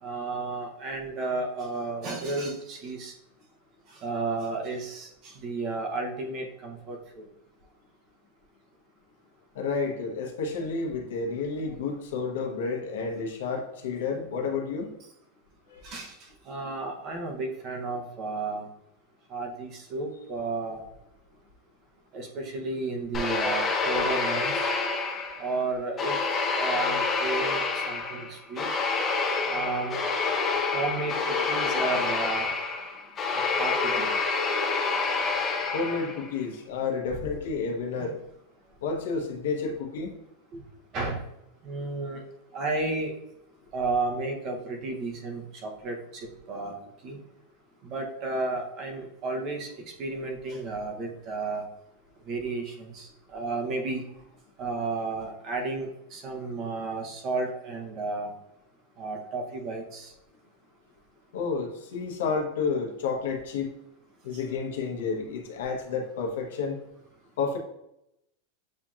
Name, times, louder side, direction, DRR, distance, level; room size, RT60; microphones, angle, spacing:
voice 1, 0.0-3.1 3.9-7.2 11.7-11.8 15.8-18.7 19.3-20.9 22.1-24.7 25.4-26.2 26.5-28.7 29.5-30.0 30.7-32.5 33.3-34.3 39.7-39.8 40.5-40.6 40.9-41.3 41.6-42.2 42.5-43.1 43.7-46.8 47.0-47.2 47.8-49.7 50.0-51.6 52.3-54.0 54.6-58.3 59.0-60.1 64.3-64.4, right 3 dB, 30° right, 2 dB, 0.8 m, -32 dB
voice 2, 9.5-14.9 15.7-15.8 35.7-38.2 38.8-40.1 61.3-63.7 64.2-66.8 67.4-67.6, left 4 dB, 75° left, 2 dB, 1.0 m, -30 dB
sound 1, 23.1-25.6 26.0-36.3, left 4 dB, 15° left, 0.5 m, -28 dB
7.5 x 2.8 x 2.4 m, 0.83 s
supercardioid pair, 175°, 0 cm